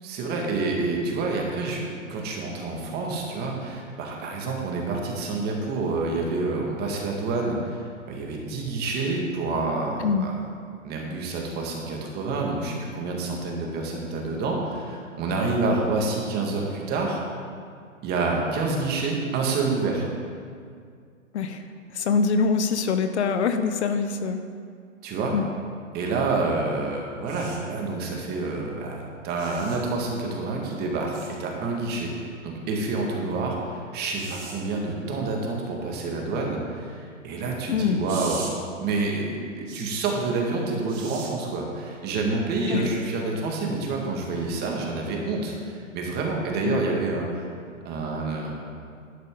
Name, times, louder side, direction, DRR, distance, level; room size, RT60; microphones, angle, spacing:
voice 1, 0.0-10.3 10.8-17.2 18.0-20.1 25.0-25.3 25.9-38.5 38.8-47.5 47.8-48.6, right 3 dB, 25° right, 0 dB, 2.0 m, -28 dB
voice 2, 21.9-24.4 25.3-25.4 37.7-38.0 42.7-42.9 46.6-46.8, left 5 dB, 55° left, 8 dB, 0.9 m, -24 dB
sound 1, 27.3-27.6 29.4-29.8 31.1-31.3 34.1-34.6 38.1-38.5 39.7-39.9 40.9-41.3 42.8-42.9, right 5 dB, 50° right, 3.1 m, -39 dB
11.0 x 10.5 x 3.9 m, 2.2 s
hypercardioid pair, 130°, 40 cm